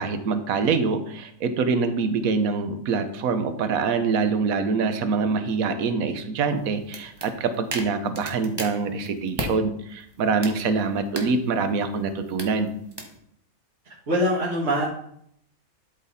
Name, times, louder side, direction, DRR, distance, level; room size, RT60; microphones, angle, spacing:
voice 1, 0.0-12.7, right 4 dB, 75° right, 9 dB, 1.2 m, -25 dB
sound 1, 6.5-9.5 10.0-13.2, right 1 dB, 20° right, 1.0 m, -37 dB
voice 2, 13.9-14.8, equal, 50° right, -7 dB, 1.9 m, -24 dB
11.5 x 4.0 x 4.1 m, 0.70 s
omnidirectional pair, 1.5 m